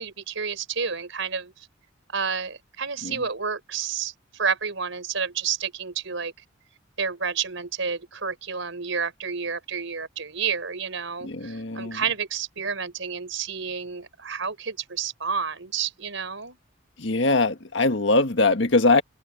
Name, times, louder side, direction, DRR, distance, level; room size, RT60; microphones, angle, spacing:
voice 1, 0.0-1.7 2.1-6.3 7.0-16.6, right 6 dB, 80° right, 4.2 m, -30 dB
voice 2, 11.2-12.0 17.0-19.0, left 3 dB, 65° left, 1.6 m, -22 dB
head